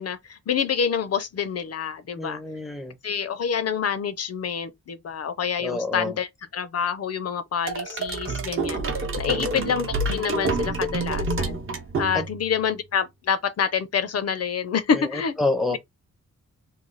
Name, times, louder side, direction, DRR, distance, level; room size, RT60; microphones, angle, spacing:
voice 1, 0.0-2.4 3.0-11.6 12.0-15.3 15.7-15.8, left 7 dB, 55° left, 0.5 m, -27 dB
voice 2, 2.1-2.9 5.6-6.2 9.2-9.7 12.1-12.2 14.9-15.0 15.4-15.8, left 2 dB, ahead, 0.5 m, -28 dB
sound 1, 7.7-12.5, right 2 dB, 45° right, 0.7 m, -28 dB
3.1 x 2.2 x 3.8 m
wide cardioid pair, 155°, 30 cm